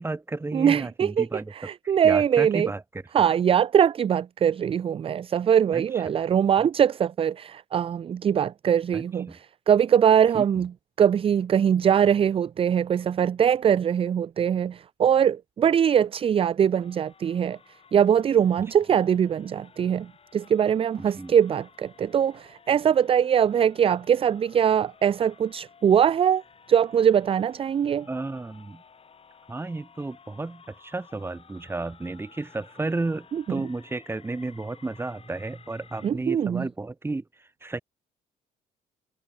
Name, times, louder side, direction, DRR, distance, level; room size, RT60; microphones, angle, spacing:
voice 1, 0.0-1.5 2.0-3.0 5.7-5.8 6.6-6.7 8.9-9.4 10.3-10.5 21.0-21.3 28.1-28.8 29.5-37.8, right 2 dB, 15° right, 1.8 m, -32 dB
voice 2, 0.5-2.7 3.1-10.7 11.0-17.6 17.9-26.4 26.7-28.1 33.3-33.6 36.0-36.7, right 8 dB, 35° right, 0.5 m, -22 dB
sound 1, 16.8-36.1, left 6 dB, 35° left, 4.7 m, -54 dB
cardioid pair, 110°, 17 cm